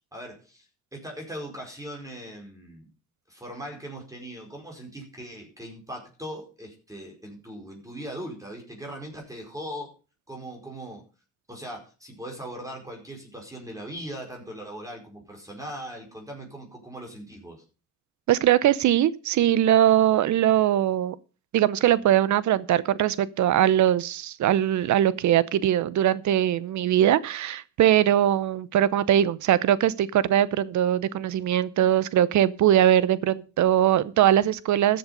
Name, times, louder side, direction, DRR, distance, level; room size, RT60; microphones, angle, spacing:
voice 1, 0.1-0.7 0.9-2.9 3.3-9.9 10.3-11.0 11.5-17.6, equal, 10° right, 4.9 m, -39 dB
voice 2, 18.3-21.2 21.5-35.0, right 11 dB, 70° right, 0.8 m, -21 dB
13.5 x 7.8 x 5.3 m
cardioid pair, 90°, 30 cm